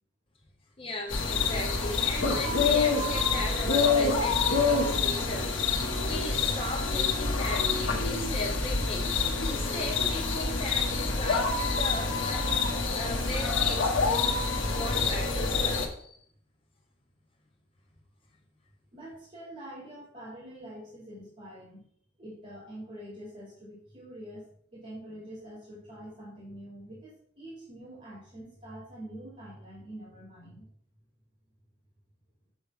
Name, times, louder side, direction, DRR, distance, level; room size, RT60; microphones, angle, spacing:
voice 1, 0.8-9.1 9.4-16.2, left 1 dB, 25° left, 0 dB, 1.2 m, -38 dB
sound 1, 1.1-15.9, left 4 dB, 70° left, 1.0 m, -27 dB
voice 2, 18.9-21.9 22.2-24.5 24.7-30.7, right 1 dB, 35° right, -6 dB, 2.4 m, -45 dB
7.2 x 3.4 x 4.7 m, 0.62 s
head